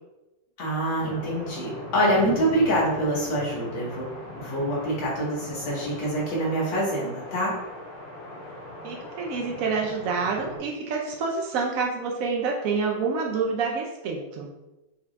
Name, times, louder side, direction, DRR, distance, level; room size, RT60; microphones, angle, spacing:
voice 1, 0.6-4.1 4.4-7.6, right 1 dB, 70° left, -6 dB, 2.2 m, -25 dB
sound 1, 1.0-10.6, left 2 dB, 90° left, 2.0 m, -40 dB
voice 2, 8.8-14.5, right 4 dB, 85° right, -1 dB, 0.7 m, -27 dB
5.9 x 2.5 x 3.2 m, 1.0 s
omnidirectional pair, 2.2 m